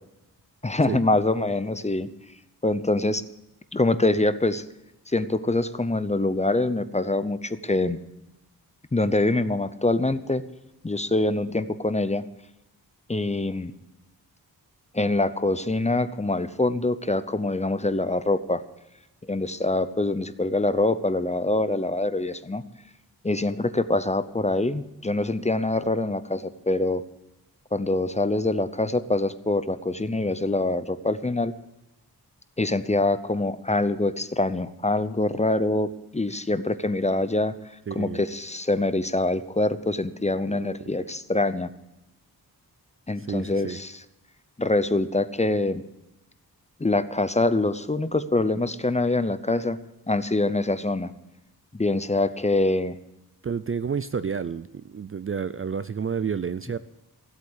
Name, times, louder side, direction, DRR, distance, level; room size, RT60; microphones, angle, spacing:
voice 1, 0.6-2.1 2.6-3.2 3.7-4.6 5.1-8.0 8.9-10.4 10.8-12.2 13.1-13.7 14.9-18.6 19.3-22.6 23.2-27.0 27.7-31.5 32.6-37.5 37.9-41.7 43.1-43.9 44.6-45.8 46.8-49.8 50.1-51.1 51.7-53.0, left 2 dB, 15° left, 13 dB, 0.7 m, -24 dB
voice 2, 37.9-38.2 40.5-40.9 43.2-43.8 53.4-56.8, right 6 dB, 35° right, 15 dB, 0.4 m, -30 dB
15.5 x 8.3 x 8.0 m, 0.89 s
wide cardioid pair, 100°, 38 cm